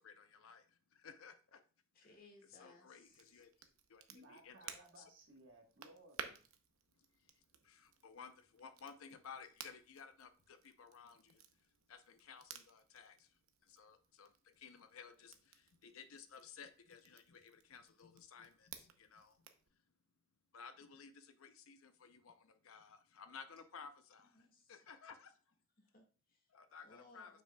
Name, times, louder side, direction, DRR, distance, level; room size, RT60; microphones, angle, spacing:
voice 1, 0.0-1.6 2.0-2.1 2.5-3.5 3.9-4.0 4.3-5.1 7.0-19.8 20.5-25.5 26.5-27.4, left 6 dB, 80° left, 0.6 m, -57 dB
voice 2, 1.9-3.5 24.3-24.8 25.8-26.5 26.8-27.4, left 2 dB, 40° left, 1.6 m, -64 dB
Crackle, 3.0-19.7, right 7 dB, 75° right, 0.7 m, -57 dB
voice 3, 4.1-6.4, right 1 dB, 60° right, 1.4 m, -61 dB
7.3 x 5.9 x 2.2 m
head